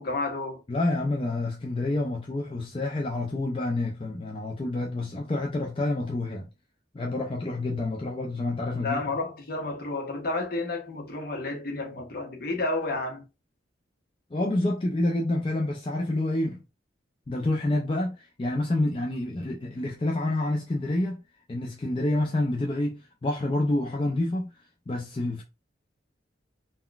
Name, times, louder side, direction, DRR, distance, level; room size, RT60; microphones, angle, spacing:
voice 1, 0.0-0.6 8.8-13.2, left 2 dB, 50° left, 0.7 m, -31 dB
voice 2, 0.7-6.5 6.9-9.0 14.3-16.6 17.3-21.2 21.5-24.5 24.9-25.4, left 2 dB, 30° left, 0.4 m, -28 dB
3.7 x 2.2 x 2.3 m
head